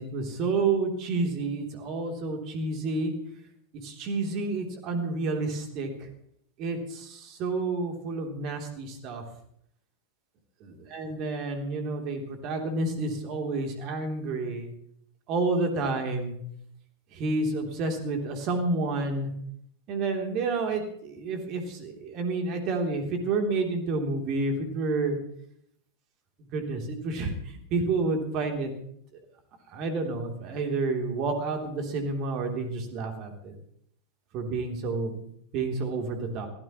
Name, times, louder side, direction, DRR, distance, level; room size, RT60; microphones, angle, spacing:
voice 1, 0.0-3.1 3.8-6.1 6.6-9.2 10.6-14.7 15.3-16.3 17.1-19.3 19.9-25.2 26.5-28.7 29.7-33.5 34.3-36.5, right 3 dB, 40° right, 3 dB, 3.2 m, -30 dB
22.0 x 16.0 x 3.1 m, 0.69 s
figure-of-eight pair, 90°, 0 cm